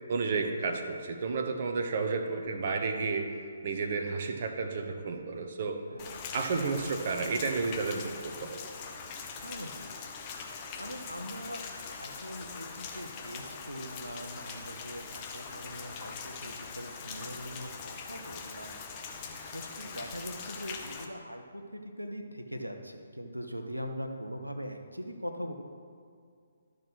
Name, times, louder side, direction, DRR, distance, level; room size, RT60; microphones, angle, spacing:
voice 1, 0.1-3.3 3.6-5.8 6.3-8.6, right 4 dB, 40° right, 4 dB, 1.0 m, -31 dB
voice 2, 5.9-6.4 9.4-9.9 10.8-18.8 19.4-25.5, equal, 90° right, 4 dB, 1.0 m, -41 dB
Rain, 6.0-21.1, left 5 dB, 25° left, 1.0 m, -42 dB
12.5 x 6.5 x 6.1 m, 2.3 s
figure-of-eight pair, 135°, 0 cm